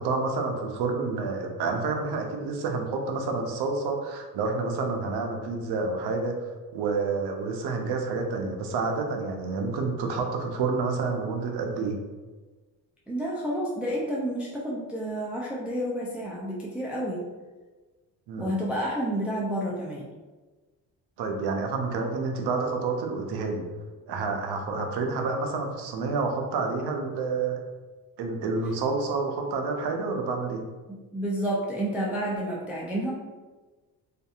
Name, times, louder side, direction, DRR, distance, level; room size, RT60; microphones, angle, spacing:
voice 1, 0.0-6.4 6.7-12.0 18.3-18.5 21.2-23.7 24.1-27.6 28.2-30.6, right 4 dB, 65° right, 3 dB, 0.6 m, -29 dB
voice 2, 13.1-17.2 18.4-20.1 31.1-33.1, equal, 5° right, -5 dB, 0.4 m, -30 dB
2.6 x 2.5 x 2.4 m, 1.3 s
cardioid pair, 85°, 43 cm